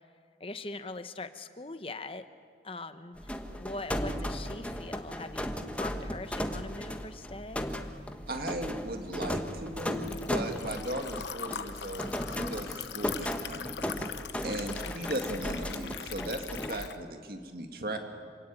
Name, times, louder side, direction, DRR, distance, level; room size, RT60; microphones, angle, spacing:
voice 1, 0.4-2.3 2.6-3.3 3.6-7.7 14.8-14.9, left 2 dB, 30° left, 10 dB, 1.0 m, -41 dB
sound 1, 3.2-16.8, equal, 5° left, 1.2 m, -36 dB
voice 2, 8.3-14.2 14.4-18.0, right 1 dB, 55° right, 5 dB, 2.2 m, -37 dB
Liquid, 8.7-17.0, left 8 dB, 85° left, 1.0 m, -41 dB
26.5 x 18.0 x 8.8 m, 2.1 s
head